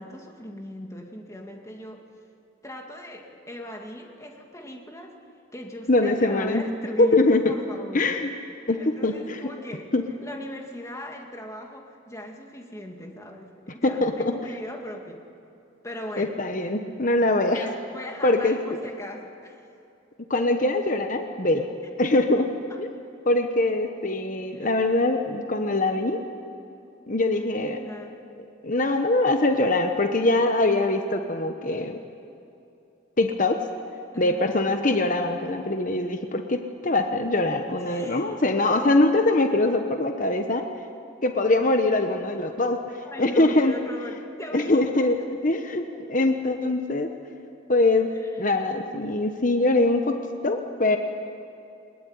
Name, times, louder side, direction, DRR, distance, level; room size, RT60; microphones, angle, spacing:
voice 1, 0.0-2.0 2.6-5.1 5.5-8.1 8.8-9.9 10.2-15.2 15.8-16.4 17.4-19.7 24.5-24.9 27.3-28.2 34.1-34.5 37.8-38.4 43.0-44.9 48.1-48.4, equal, 15° left, 2 dB, 2.1 m, -39 dB
voice 2, 5.9-6.7 7.0-7.5 7.9-8.3 8.7-9.5 9.9-10.0 13.8-14.4 16.2-17.6 18.2-18.6 20.3-21.7 22.0-22.5 22.8-22.9 23.3-26.2 27.1-27.8 28.6-32.0 33.2-33.6 34.2-40.6 41.2-43.7 44.5-45.2 45.4-47.1 47.7-48.1 48.4-50.2 50.4-51.0, left 2 dB, 40° left, 5 dB, 1.1 m, -23 dB
21.0 x 21.0 x 9.5 m, 2.7 s
head